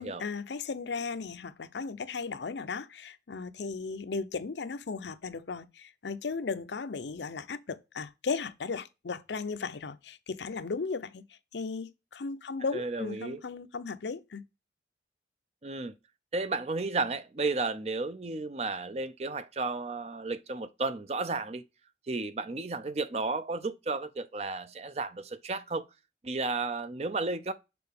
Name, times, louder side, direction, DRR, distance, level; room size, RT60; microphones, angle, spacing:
voice 1, 0.0-14.4, left 4 dB, 80° left, 0.6 m, -36 dB
voice 2, 12.7-13.4 15.6-15.9 16.3-21.6 22.1-25.9 26.2-27.5, right 3 dB, 35° right, 0.5 m, -33 dB
6.8 x 4.1 x 3.4 m
head